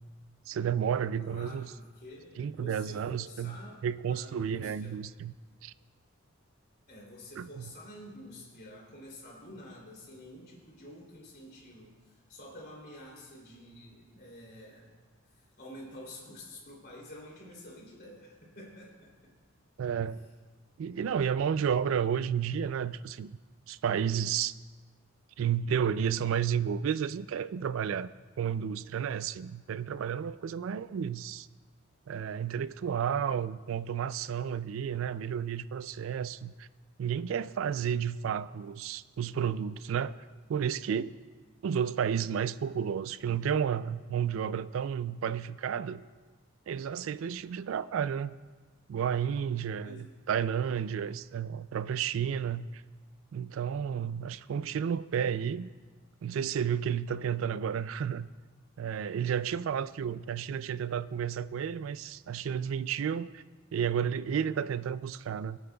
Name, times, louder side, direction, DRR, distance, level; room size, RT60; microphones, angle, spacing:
voice 1, 0.5-1.7 2.4-3.5 3.8-5.3 5.6-5.7 7.4-7.5 19.8-20.2 20.8-23.4 23.7-24.5 25.4-28.1 28.4-31.5 32.1-36.7 37.0-40.1 40.5-41.1 41.6-46.0 46.7-48.4 48.9-52.8 53.3-55.7 56.2-58.3 58.8-63.4 63.7-65.6, right 8 dB, 70° right, 0.3 m, -31 dB
voice 2, 1.2-5.0 5.8-5.9 6.9-14.9 15.3-19.3 49.8-50.1, left 1 dB, 50° left, 3.0 m, -49 dB
25.0 x 8.6 x 2.3 m
head